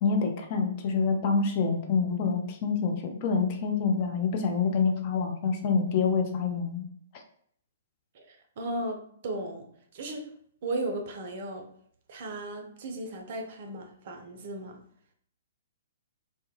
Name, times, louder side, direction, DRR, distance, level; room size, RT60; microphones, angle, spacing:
voice 1, 0.0-6.8, left 5 dB, 35° left, 3 dB, 0.4 m, -27 dB
voice 2, 8.1-9.7 9.9-10.3 10.6-11.7 12.1-14.8, right 2 dB, 45° right, 3 dB, 0.4 m, -36 dB
2.1 x 2.0 x 3.0 m, 0.66 s
figure-of-eight pair, 120°, 0 cm